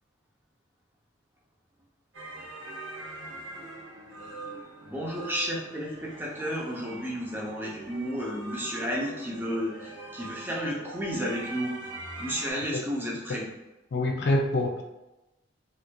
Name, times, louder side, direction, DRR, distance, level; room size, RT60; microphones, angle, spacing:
sound 1, 2.1-12.5, right 2 dB, 85° right, 0.7 m, -42 dB
voice 1, 4.8-11.9 12.2-13.5, equal, 10° right, -3 dB, 0.6 m, -32 dB
voice 2, 13.9-14.8, left 1 dB, 60° left, 2 dB, 0.4 m, -25 dB
4.4 x 2.5 x 2.2 m, 0.98 s
head